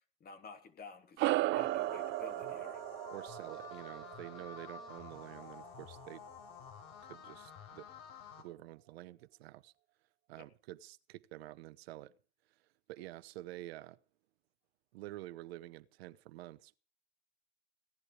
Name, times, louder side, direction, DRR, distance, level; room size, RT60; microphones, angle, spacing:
voice 1, 0.2-2.8 10.4-10.5, left 5 dB, 30° left, 3.2 m, -52 dB
sound 1, 1.2-5.9, right 18 dB, 40° right, 0.6 m, -36 dB
sound 2, 1.6-8.4, left 6 dB, 60° left, 5.3 m, -51 dB
voice 2, 3.1-6.2 7.1-7.9 8.4-9.7 10.3-12.1 12.9-14.0 14.9-16.8, right 16 dB, 75° right, 1.1 m, -49 dB
17.0 x 11.0 x 5.0 m
supercardioid pair, 115°, 31 cm